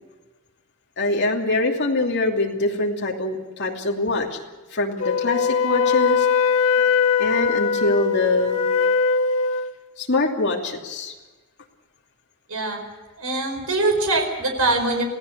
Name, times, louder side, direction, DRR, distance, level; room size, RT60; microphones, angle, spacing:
voice 1, 1.0-4.4 4.7-6.3 6.8-6.9 7.2-8.6 10.0-11.1, left 2 dB, 55° left, -1 dB, 2.8 m, -24 dB
Wind instrument woodwind instrument, 5.0-9.7, left 5 dB, 75° left, 1.8 m, -21 dB
voice 2, 12.5-12.8 13.2-15.0, right 2 dB, 85° right, 4 dB, 4.9 m, -22 dB
26.5 x 17.0 x 6.8 m, 1.2 s
head